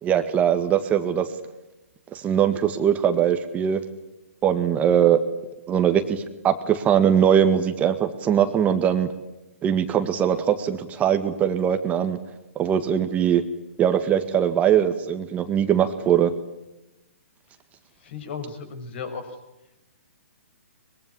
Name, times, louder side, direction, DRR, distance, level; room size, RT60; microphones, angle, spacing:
voice 1, 0.0-1.3 2.1-3.8 4.4-5.2 5.7-9.1 9.6-12.2 12.6-13.4 13.8-16.3, right 9 dB, 20° right, 8 dB, 1.9 m, -21 dB
voice 2, 18.0-19.3, left 5 dB, 50° left, 9 dB, 6.5 m, -35 dB
23.5 x 22.5 x 10.0 m, 0.97 s
figure-of-eight pair, 130°, 8 cm